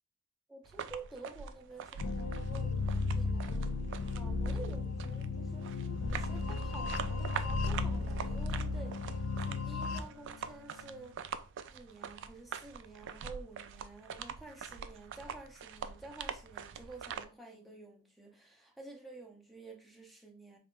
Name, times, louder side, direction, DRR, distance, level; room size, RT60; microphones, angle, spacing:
voice 1, 0.5-11.2 11.6-20.6, right 3 dB, ahead, 0.5 m, -51 dB
sound 1, 0.6-17.2, right 7 dB, 55° right, 0.3 m, -44 dB
sound 2, 2.0-10.0, left 3 dB, 70° left, 0.4 m, -34 dB
Bowed string instrument, 6.1-11.6, right 2 dB, 90° right, 0.7 m, -56 dB
3.9 x 2.4 x 3.5 m
head